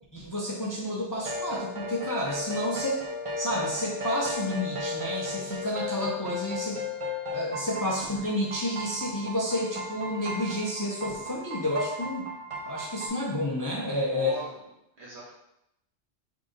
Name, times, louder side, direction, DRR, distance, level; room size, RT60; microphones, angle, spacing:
voice 1, 0.1-3.0 3.4-6.8 7.3-12.3 12.7-14.3, left 1 dB, 25° left, -4 dB, 0.4 m, -30 dB
sound 1, 1.1-13.1, left 2 dB, 40° right, 0.5 m, -35 dB
voice 2, 13.9-14.5 15.0-15.3, right 3 dB, 75° right, -7 dB, 1.6 m, -39 dB
3.7 x 2.5 x 3.8 m, 0.82 s
omnidirectional pair, 1.2 m